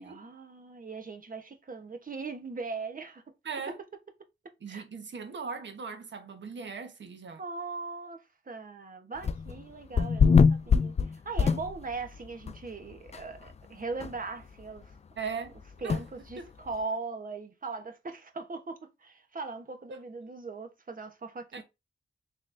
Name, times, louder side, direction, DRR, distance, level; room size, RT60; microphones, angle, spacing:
voice 1, 0.0-3.2 4.7-4.8 7.4-14.9 15.8-21.6, right 4 dB, 45° right, 1.0 m, -39 dB
voice 2, 3.4-3.8 4.6-7.4 15.2-15.6 15.8-16.0 16.4-16.5 21.5-21.6, right 5 dB, 70° right, 1.2 m, -39 dB
sound 1, 9.2-9.6 10.0-12.1 12.5-12.6 13.1-13.2 13.5-13.6 14.0-14.1 15.9-16.0, left 5 dB, 35° left, 0.3 m, -23 dB
3.8 x 3.2 x 2.6 m
cardioid pair, 55°, 20 cm